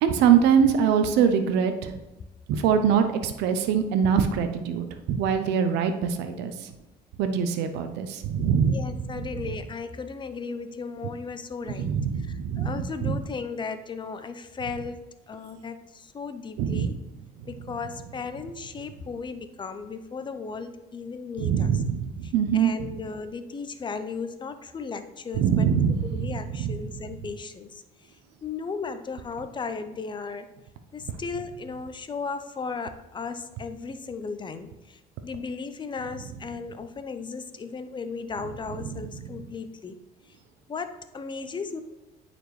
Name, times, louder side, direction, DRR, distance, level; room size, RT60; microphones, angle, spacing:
voice 1, 0.0-1.9 2.6-6.5 7.2-8.8 11.8-12.7 13.0-13.2 16.6-16.9 21.4-22.7 25.4-26.7 38.9-39.0, right 7 dB, 90° right, 8 dB, 0.6 m, -23 dB
voice 2, 8.6-11.9 12.2-15.0 15.3-17.0 17.5-21.8 22.2-25.7 26.1-27.8 28.4-30.5 30.9-40.0 40.7-41.8, left 4 dB, 30° left, 10 dB, 0.6 m, -36 dB
9.3 x 4.3 x 3.2 m, 1.0 s
cardioid pair, 110°, 17 cm